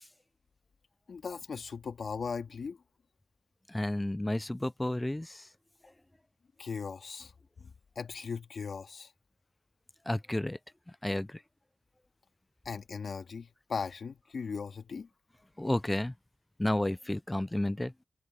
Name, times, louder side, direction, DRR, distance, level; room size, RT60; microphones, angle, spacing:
voice 1, 1.1-2.8 6.6-7.3 8.0-9.1 12.7-15.1, left 5 dB, 55° left, 2.2 m, -38 dB
voice 2, 3.7-5.4 10.1-10.6 11.0-11.3 15.6-16.1 16.6-17.9, left 1 dB, 10° left, 0.4 m, -31 dB
wide cardioid pair, 135°, 0 cm